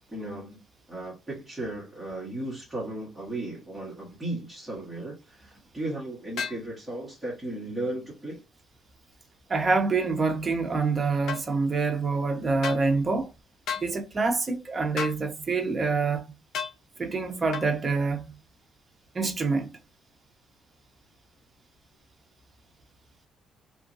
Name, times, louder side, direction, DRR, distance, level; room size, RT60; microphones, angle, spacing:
voice 1, 0.1-0.6 0.9-8.4, right 1 dB, 5° right, 1.2 m, -35 dB
sound 1, 6.4-6.6 11.3-11.4 12.6-12.8 13.7-13.9 15.0-15.2 16.5-16.8 17.5-17.7, left 6 dB, 65° left, 0.6 m, -32 dB
voice 2, 9.5-13.3 13.8-16.2 17.0-18.3 19.1-19.7, right 4 dB, 25° right, 0.7 m, -26 dB
3.0 x 2.5 x 2.6 m
cardioid pair, 130°, 0 cm